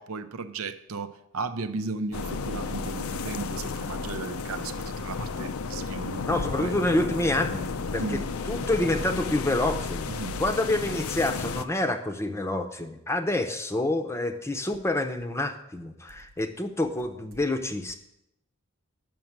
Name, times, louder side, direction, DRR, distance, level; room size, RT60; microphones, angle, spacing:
voice 1, 0.0-6.3 6.5-6.7 8.0-8.2 10.1-10.4, right 4 dB, 70° right, 0.6 m, -35 dB
sound 1, 2.1-11.6, left 4 dB, 75° left, 0.6 m, -33 dB
voice 2, 6.2-8.2 8.5-10.1 10.4-17.9, left 1 dB, 10° left, 0.7 m, -27 dB
9.4 x 6.1 x 7.3 m
head